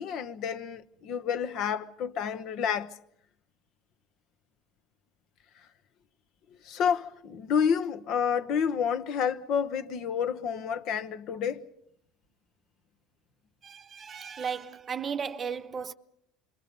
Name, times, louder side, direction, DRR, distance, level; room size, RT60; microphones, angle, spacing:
voice 1, 0.0-3.0 6.5-11.7, left 7 dB, 60° left, 1.0 m, -29 dB
voice 2, 13.6-15.9, right 6 dB, 30° right, 0.8 m, -35 dB
27.0 x 23.0 x 5.3 m
supercardioid pair, 115°, 0 cm